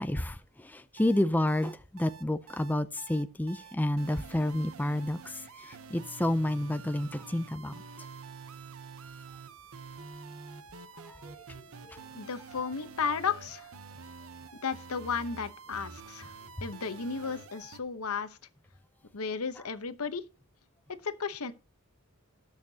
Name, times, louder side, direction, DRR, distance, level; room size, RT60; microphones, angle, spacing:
voice 1, 0.0-7.8 11.0-11.3 11.9-12.0, left 1 dB, 10° left, 0.4 m, -30 dB
sound 1, 1.0-17.8, right 5 dB, 70° right, 0.9 m, -48 dB
voice 2, 12.1-13.7 14.6-16.3 16.6-18.4 19.1-20.3 21.0-21.5, left 5 dB, 75° left, 0.9 m, -34 dB
18.5 x 6.5 x 2.8 m
head